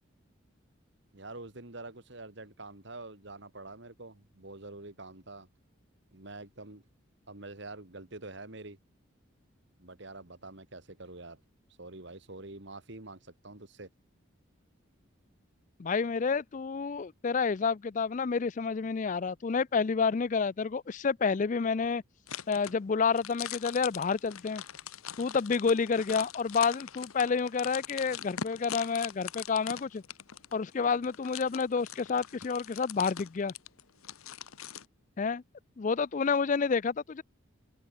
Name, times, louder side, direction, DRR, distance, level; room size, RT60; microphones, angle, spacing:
voice 1, 1.1-5.5 6.1-6.8 7.3-8.8 9.8-11.4 11.8-13.9, right 2 dB, 55° right, 2.2 m, -46 dB
voice 2, 15.8-22.0 22.5-24.6 25.2-30.0 30.5-33.5 35.2-35.4 35.8-37.2, left 5 dB, 35° left, 0.4 m, -29 dB
sound 1, 22.3-34.8, left 9 dB, 85° left, 1.2 m, -42 dB
head